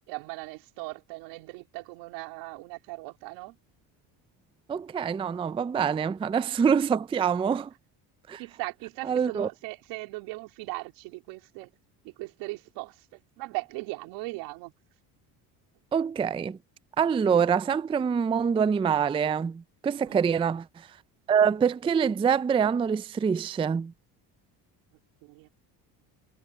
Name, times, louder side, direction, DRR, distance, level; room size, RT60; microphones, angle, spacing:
voice 1, 0.0-3.6 8.4-11.7 12.0-14.7 20.1-20.5 25.2-25.5, right 23 dB, 90° right, 3.2 m, -39 dB
voice 2, 4.7-7.7 8.3-8.4 9.1-9.5 15.9-16.6 17.0-20.6 21.3-23.9, right 7 dB, 15° right, 0.3 m, -25 dB
supercardioid pair, 90°, 43 cm